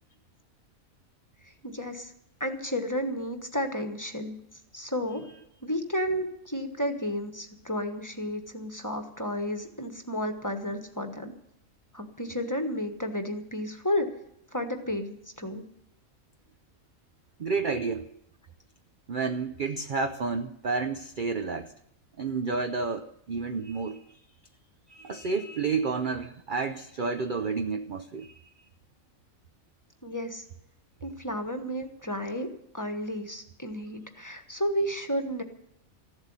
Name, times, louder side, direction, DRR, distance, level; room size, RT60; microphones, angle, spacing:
voice 1, 1.4-2.1 2.4-4.4 4.7-5.2 5.6-11.3 11.9-14.1 14.5-15.7 30.0-30.5 31.0-32.5 32.7-35.4, equal, 15° left, 5 dB, 1.2 m, -32 dB
voice 2, 17.4-18.1 19.1-21.7 22.2-24.0 24.9-28.3, right 4 dB, 50° right, 7 dB, 0.7 m, -30 dB
15.0 x 8.0 x 9.6 m, 0.79 s
omnidirectional pair, 1.4 m